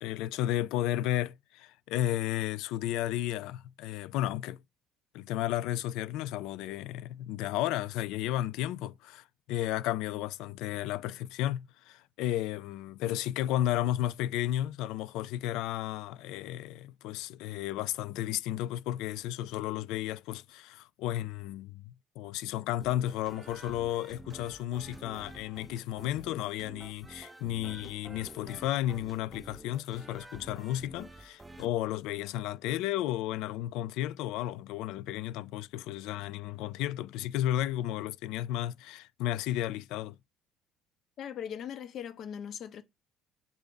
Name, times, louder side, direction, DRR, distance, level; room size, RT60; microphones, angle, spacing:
voice 1, 0.0-4.6 5.1-40.2, left 13 dB, 80° left, 0.4 m, -33 dB
sound 1, 22.8-31.7, right 2 dB, 15° right, 0.7 m, -50 dB
voice 2, 41.2-42.8, left 8 dB, 60° left, 0.9 m, -39 dB
7.1 x 3.4 x 3.8 m
supercardioid pair, 85°, 0 cm